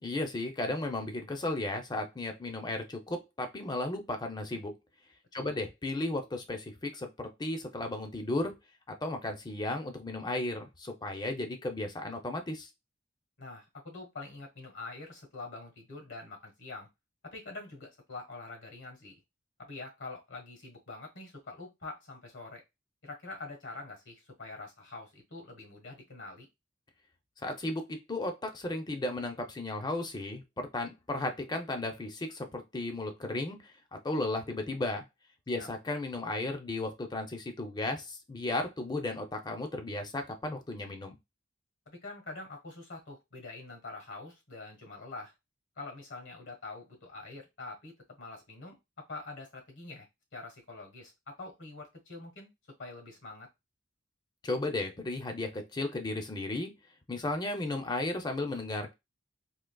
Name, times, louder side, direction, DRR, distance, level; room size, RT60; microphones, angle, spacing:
voice 1, 0.0-4.7 5.3-8.6 8.9-12.7 27.4-33.7 34.0-35.0 35.5-41.2 54.4-56.7 57.1-58.9, left 2 dB, 20° left, 6 dB, 0.5 m, -34 dB
voice 2, 13.4-16.9 17.2-19.1 19.6-22.6 23.0-26.5 35.5-35.7 41.9-45.3 45.8-50.1 50.3-52.5 52.8-53.5, left 3 dB, 75° left, 3 dB, 1.4 m, -45 dB
3.8 x 2.8 x 2.2 m, 0.22 s
head